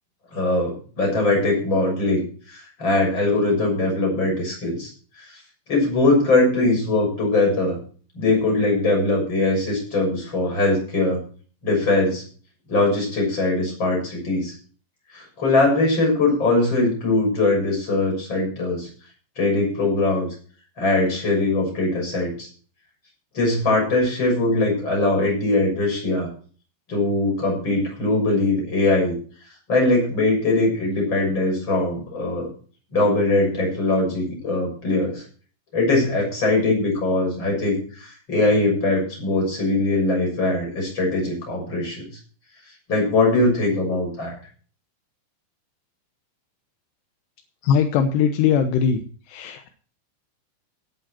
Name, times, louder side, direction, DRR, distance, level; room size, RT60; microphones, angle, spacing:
voice 1, 0.3-4.9 5.2-5.4 5.7-7.8 8.2-11.2 11.6-12.2 12.7-14.5 15.1-18.9 19.4-20.3 20.8-22.5 23.3-26.3 26.9-29.2 29.7-32.5 32.9-35.2 35.7-42.1 42.9-44.4, left 2 dB, 20° left, 0 dB, 6.8 m, -21 dB
voice 2, 47.6-49.0 49.3-49.7, left 7 dB, 75° left, 6 dB, 2.6 m, -20 dB
17.5 x 8.7 x 4.4 m, 0.42 s
omnidirectional pair, 6.0 m